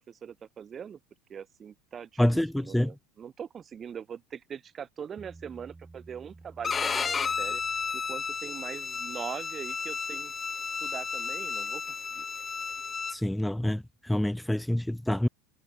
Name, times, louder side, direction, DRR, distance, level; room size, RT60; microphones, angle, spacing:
voice 1, 0.1-1.0 1.3-7.6 7.9-10.3 10.8-11.8 12.1-12.2, right 7 dB, 30° right, 6.4 m, -42 dB
voice 2, 2.2-2.9 13.1-15.3, left 1 dB, 5° left, 0.4 m, -27 dB
Bass guitar, 5.2-8.6, right 3 dB, 15° right, 5.8 m, -52 dB
Bowed string instrument, 6.6-13.1, left 6 dB, 25° left, 1.5 m, -33 dB
hypercardioid pair, 80°, 0 cm